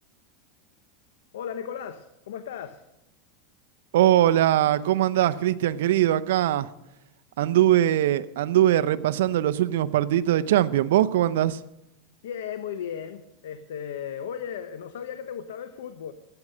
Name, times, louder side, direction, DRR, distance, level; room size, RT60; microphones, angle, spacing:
voice 1, 1.3-2.8 12.2-16.1, left 8 dB, 85° left, 9 dB, 1.0 m, -36 dB
voice 2, 3.9-6.7 7.4-11.6, right 12 dB, 80° right, 13 dB, 0.7 m, -21 dB
14.5 x 9.8 x 6.6 m, 0.87 s
supercardioid pair, 120°, 0 cm